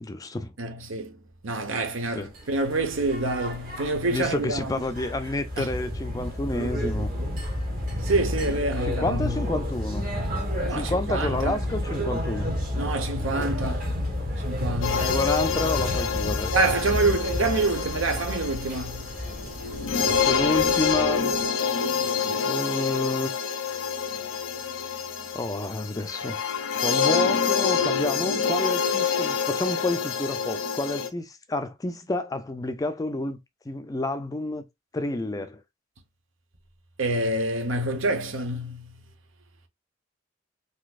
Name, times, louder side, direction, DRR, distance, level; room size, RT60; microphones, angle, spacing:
voice 1, 0.0-0.5 2.1-2.3 4.1-7.1 8.5-10.1 10.7-12.5 13.2-13.6 15.0-16.5 20.0-21.3 22.3-23.3 25.3-26.5 26.8-33.4 33.7-34.6 34.9-35.6, left 2 dB, 20° left, 0.4 m, -29 dB
voice 2, 0.6-1.2 1.4-4.7 5.6-5.7 8.0-9.3 10.6-11.6 12.8-13.8 14.4-15.1 16.5-19.1 37.0-38.9, right 2 dB, 85° right, 0.9 m, -27 dB
sound 1, 2.3-21.5, left 1 dB, 45° right, 1.1 m, -31 dB
sound 2, 14.8-31.1, left 6 dB, 75° left, 0.6 m, -27 dB
4.0 x 2.7 x 2.4 m
head